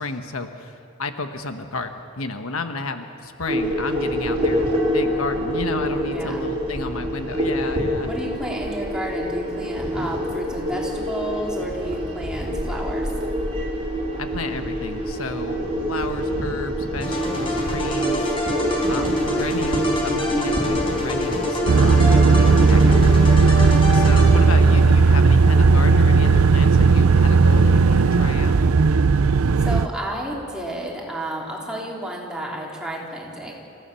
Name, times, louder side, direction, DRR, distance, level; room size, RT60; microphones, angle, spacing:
voice 1, 0.0-8.1 14.2-18.3 18.9-28.6, left 3 dB, 80° left, 7 dB, 1.3 m, -32 dB
sound 1, 3.5-23.1, equal, 30° right, 3.0 m, -26 dB
voice 2, 6.1-6.5 8.0-13.1 29.6-33.5, right 1 dB, 5° right, -3 dB, 3.6 m, -31 dB
sound 2, 17.0-24.7, left 1 dB, 25° left, 4.8 m, -27 dB
sound 3, 21.7-29.9, right 4 dB, 90° right, 0.5 m, -15 dB
27.5 x 16.0 x 6.9 m, 2.6 s
head